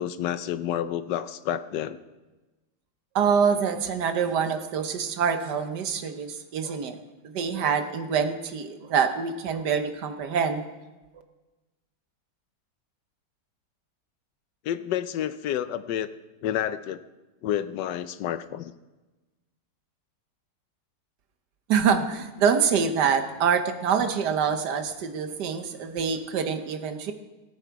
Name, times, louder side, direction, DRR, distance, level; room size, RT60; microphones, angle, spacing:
voice 1, 0.0-2.0 14.6-16.1 16.4-17.0 17.4-18.7, left 10 dB, 80° left, 13 dB, 1.3 m, -29 dB
voice 2, 3.1-7.0 7.3-10.6 21.7-27.1, right 6 dB, 75° right, 8 dB, 1.5 m, -25 dB
18.0 x 8.1 x 4.7 m, 1.1 s
omnidirectional pair, 1.9 m